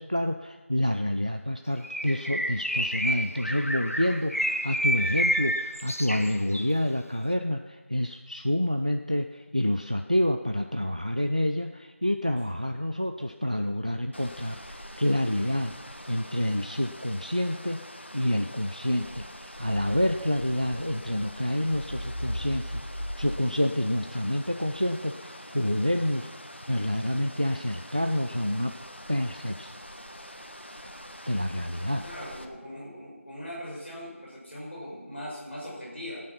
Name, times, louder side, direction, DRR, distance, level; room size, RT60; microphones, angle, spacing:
voice 1, 0.0-15.8 16.1-17.8 18.1-26.3 26.7-28.7 29.1-29.7 31.3-32.0, left 1 dB, 30° right, 6 dB, 0.5 m, -28 dB
Bird, 1.8-6.8, equal, 80° left, 1.2 m, -29 dB
sound 1, 14.1-32.4, equal, 50° left, 1.4 m, -42 dB
voice 2, 32.0-36.2, equal, ahead, -33 dB, 2.0 m, -40 dB
18.5 x 9.6 x 5.7 m, 1.3 s
figure-of-eight pair, 180°, 8 cm